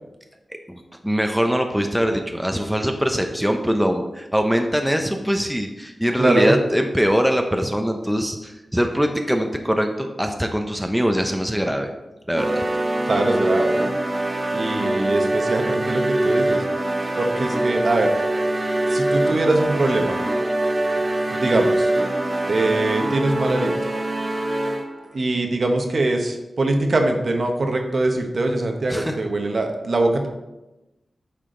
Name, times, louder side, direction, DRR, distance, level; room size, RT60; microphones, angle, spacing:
voice 1, 0.7-11.9 12.3-12.6 28.9-29.2, equal, 5° right, 4 dB, 0.7 m, -22 dB
voice 2, 6.2-6.6 13.1-13.8 14.5-16.6 17.2-18.1 18.9-20.2 21.3-21.9 22.5-23.7 25.1-30.3, right 2 dB, 55° right, 4 dB, 1.1 m, -22 dB
sound 1, 12.4-25.0, right 1 dB, 35° right, 0.8 m, -23 dB
8.8 x 4.9 x 3.8 m, 1.0 s
wide cardioid pair, 75°, 0 cm